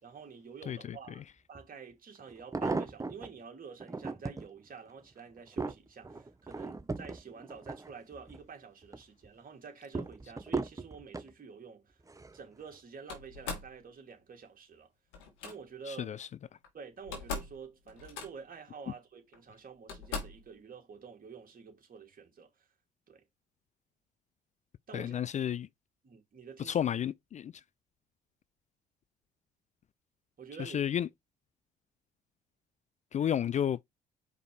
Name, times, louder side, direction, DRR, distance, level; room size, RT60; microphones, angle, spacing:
voice 1, 0.0-12.0 12.3-14.9 15.4-16.2 16.7-22.7 23.1-23.2 24.9-25.5 26.0-26.8 30.4-30.8, right 5 dB, 45° right, 2.7 m, -49 dB
sound 1, 1.5-1.6 2.3-3.3 3.8-4.5 5.0-8.4 8.8-9.3 9.9-11.3 12.1-12.4 12.7-12.8, right 3 dB, 15° right, 1.0 m, -37 dB
Slam, 13.1-13.7 15.1-15.5 16.6-16.7 17.0-17.6 17.9-18.6 19.3-19.4 19.9-20.5, left 4 dB, 75° left, 2.2 m, -40 dB
voice 2, 24.9-25.7 26.7-27.5 30.6-31.1 33.1-33.8, left 9 dB, 35° left, 0.4 m, -31 dB
5.0 x 4.5 x 4.7 m
hypercardioid pair, 55°, 20 cm